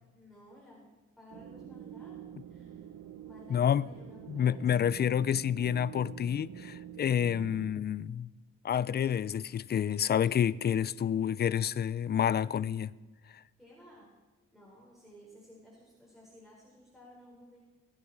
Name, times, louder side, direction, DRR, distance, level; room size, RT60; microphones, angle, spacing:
voice 1, 0.1-0.9 1.2-2.2 2.5-2.9 3.2-4.9 13.6-14.1 14.5-17.6, left 1 dB, ahead, 4.5 m, -55 dB
sound 1, 1.3-7.7, right 10 dB, 70° right, 0.9 m, -47 dB
voice 2, 3.5-3.9 4.3-8.3 8.6-12.9, left 9 dB, 35° left, 0.4 m, -29 dB
19.0 x 9.2 x 4.8 m
cardioid pair, 90°, 30 cm